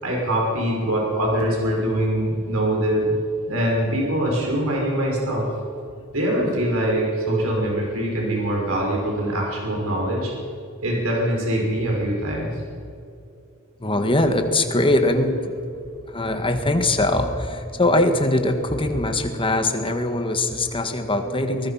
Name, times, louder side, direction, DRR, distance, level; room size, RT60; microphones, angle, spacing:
voice 1, 0.0-3.2 3.4-5.5 6.1-10.3 10.8-12.5, right 1 dB, 75° right, -2 dB, 5.8 m, -23 dB
voice 2, 13.8-15.7 16.1-21.7, left 1 dB, 25° left, 6 dB, 1.8 m, -22 dB
22.5 x 20.0 x 5.8 m, 2.6 s
head